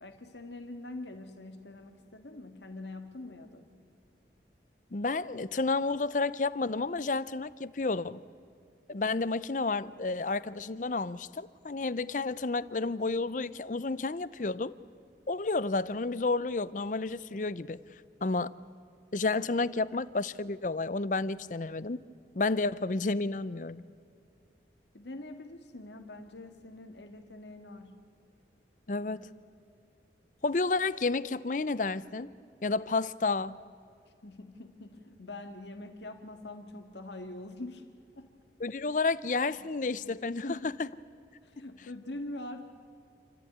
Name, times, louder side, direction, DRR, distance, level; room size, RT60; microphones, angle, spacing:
voice 1, 0.0-3.7 24.9-28.0 28.9-29.2 34.2-37.8 38.2-38.3 39.6-39.7 40.4-40.8 41.4-42.6, left 2 dB, 80° left, 6 dB, 1.8 m, -44 dB
voice 2, 4.9-8.2 8.9-14.7 15.3-17.8 18.2-18.5 19.1-22.0 22.3-23.8 28.9-29.2 30.4-32.3 32.6-33.6 38.6-40.4 40.8-40.9, left 3 dB, 45° left, 17 dB, 0.6 m, -31 dB
28.0 x 14.0 x 9.4 m, 2.5 s
head